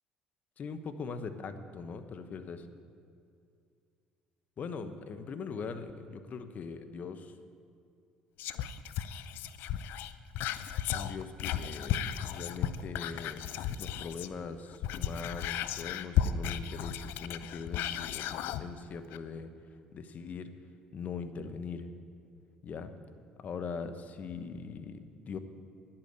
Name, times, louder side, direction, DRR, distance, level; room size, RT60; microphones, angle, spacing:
voice 1, 0.6-2.7 4.6-7.4 10.9-13.5 13.8-19.5 19.9-20.5 20.9-21.9 22.6-22.9 23.4-25.4, left 5 dB, 45° left, 9 dB, 1.1 m, -41 dB
Whispering, 8.4-14.4 14.7-18.6 19.1-19.2, left 10 dB, 70° left, 0.5 m, -34 dB
10.5 x 8.8 x 9.5 m, 2.4 s
hypercardioid pair, 65°, 4 cm